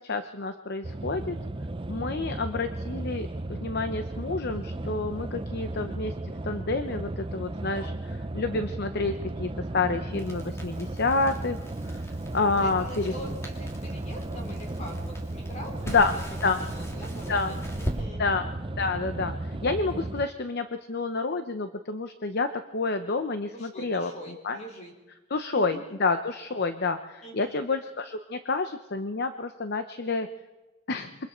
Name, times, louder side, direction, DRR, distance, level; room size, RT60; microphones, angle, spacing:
voice 1, 0.0-1.4 1.9-6.1 6.4-11.6 12.3-13.1 15.9-16.1 16.4-16.6 17.3-17.5 18.2-18.5 18.8-24.1 24.4-24.6 25.3-30.3 30.9-31.2, left 3 dB, 50° left, 9 dB, 0.8 m, -29 dB
sound 1, 0.8-20.3, right 2 dB, 25° right, 0.6 m, -35 dB
Crackle, 10.1-18.0, equal, 15° left, 2.9 m, -41 dB
voice 2, 12.6-16.2 16.5-18.2 23.5-24.9 25.3-25.8 27.2-27.6, equal, 35° left, 1 dB, 4.1 m, -43 dB
27.0 x 23.5 x 4.4 m, 1.1 s
head